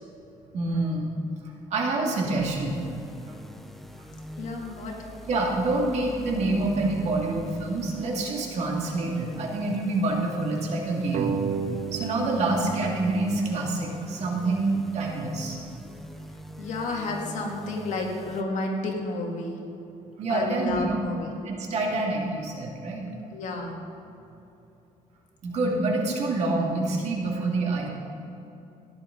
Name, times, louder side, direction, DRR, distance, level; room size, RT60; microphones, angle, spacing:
voice 1, 0.5-1.1 1.7-2.8 5.3-11.3 11.9-15.6 20.2-21.0 21.4-23.0 25.4-27.9, right 2 dB, 55° right, -1 dB, 2.3 m, -27 dB
sound 1, 2.4-18.4, equal, ahead, 0.6 m, -43 dB
voice 2, 4.4-5.1 12.4-12.5 16.6-19.6 20.3-21.3 23.3-23.8, left 2 dB, 65° left, 0 dB, 2.1 m, -31 dB
sound 2, 11.1-14.3, right 7 dB, 80° right, 0.6 m, -33 dB
15.5 x 10.5 x 3.9 m, 2.9 s
cardioid pair, 135°, 13 cm